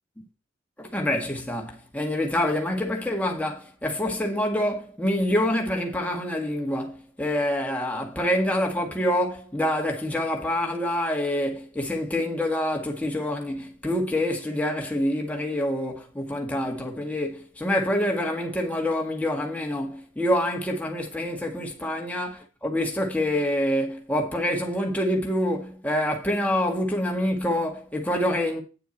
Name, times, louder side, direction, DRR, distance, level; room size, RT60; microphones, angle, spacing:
voice 1, 0.8-28.6, left 1 dB, 10° left, 1.7 m, -26 dB
9.4 x 6.9 x 4.4 m
head